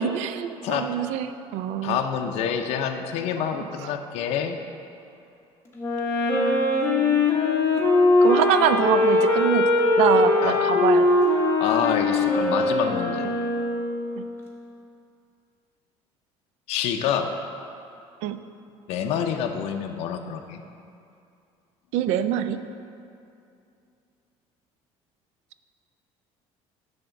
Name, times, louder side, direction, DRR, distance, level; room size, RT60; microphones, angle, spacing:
voice 1, 0.0-2.0 3.8-3.9 8.2-9.7 10.0-11.1 14.2-14.3 18.2-18.4 21.9-22.6, right 10 dB, 80° right, 11 dB, 0.4 m, -24 dB
voice 2, 0.6-1.0 1.8-4.6 10.4-10.6 11.6-13.3 16.7-17.3 18.9-20.6, left 8 dB, 65° left, 5 dB, 0.5 m, -27 dB
Wind instrument woodwind instrument, 5.8-14.1, left 2 dB, 20° left, 1.2 m, -21 dB
10.0 x 3.5 x 6.9 m, 2.6 s
cardioid pair, 155°, 11 cm